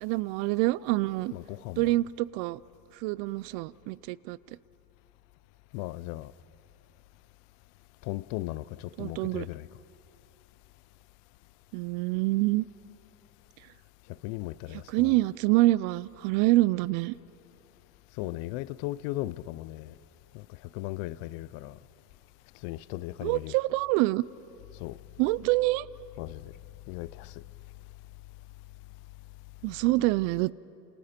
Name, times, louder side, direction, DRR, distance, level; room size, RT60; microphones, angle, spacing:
voice 1, 0.0-1.3 1.8-2.6 2.9-4.4 9.0-9.5 11.7-12.7 14.7-17.1 23.2-24.2 25.2-25.9 29.6-30.5, right 19 dB, 60° right, 0.5 m, -26 dB
voice 2, 1.3-2.0 5.7-6.3 8.0-9.7 14.2-15.2 18.2-19.9 20.3-20.5 20.7-21.8 22.6-23.6 24.8-25.0 26.2-26.5 26.9-27.4, left 18 dB, 60° left, 0.6 m, -37 dB
28.5 x 28.0 x 4.4 m
supercardioid pair, 120°, 49 cm